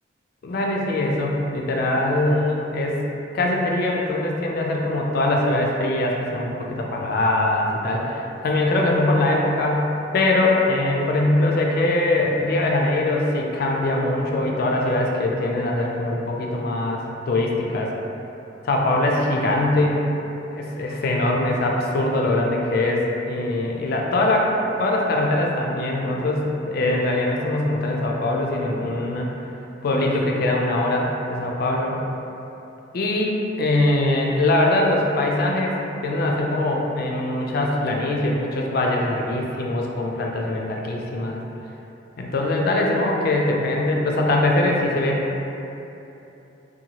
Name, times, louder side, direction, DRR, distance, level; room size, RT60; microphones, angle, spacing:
voice 1, 0.4-3.0 3.3-17.9 18.6-20.0 20.5-24.5 24.8-29.3 29.8-32.0 32.9-35.8 36.0-41.4 42.2-45.2, left 2 dB, 50° left, -1 dB, 0.3 m, -22 dB
2.7 x 2.2 x 2.8 m, 2.9 s
head